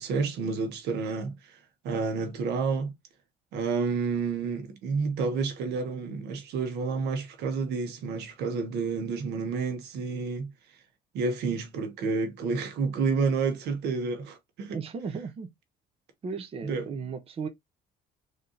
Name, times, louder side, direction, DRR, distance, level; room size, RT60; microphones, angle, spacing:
voice 1, 0.0-1.6 1.8-2.9 3.5-10.5 11.1-14.8 16.6-16.9, right 4 dB, 80° right, 1.3 m, -30 dB
voice 2, 14.7-15.5 16.2-17.5, right 5 dB, 35° right, 0.8 m, -35 dB
3.9 x 3.5 x 2.6 m
cardioid pair, 110°, 17 cm